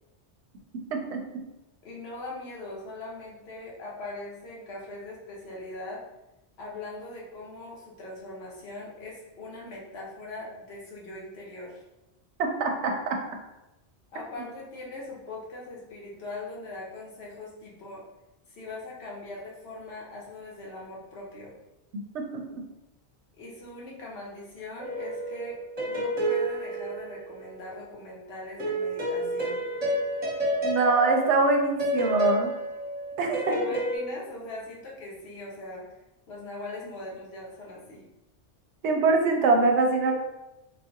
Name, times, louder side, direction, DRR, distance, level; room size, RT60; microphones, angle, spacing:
voice 1, 1.8-6.0 6.6-11.8 14.1-18.0 18.5-21.5 23.4-29.6 33.2-36.0 36.3-38.0, left 2 dB, 65° left, -4 dB, 1.1 m, -41 dB
voice 2, 12.4-12.9 22.1-22.4 30.6-32.5 33.2-33.5 38.8-40.1, right 3 dB, 80° right, 3 dB, 0.9 m, -23 dB
sound 1, 24.8-27.7 28.6-34.0, equal, 35° right, 1.0 m, -30 dB
3.7 x 2.3 x 2.8 m, 0.96 s
omnidirectional pair, 1.2 m